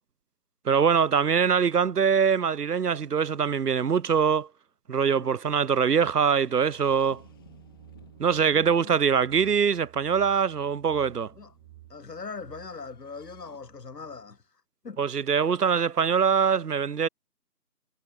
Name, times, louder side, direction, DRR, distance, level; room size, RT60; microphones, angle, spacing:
voice 1, 0.7-4.5 4.9-7.2 8.2-11.3 15.0-17.1, right 6 dB, 75° right, 0.8 m, -23 dB
sound 1, 6.3-12.0 12.8-13.6, left 10 dB, 15° left, 3.0 m, -59 dB
sound 2, 6.6-14.3, right 18 dB, 10° right, 5.9 m, -53 dB
voice 2, 8.5-9.0 11.3-11.5 11.9-14.4 14.8-15.0, left 4 dB, 80° left, 1.5 m, -41 dB
figure-of-eight pair, 165°, 47 cm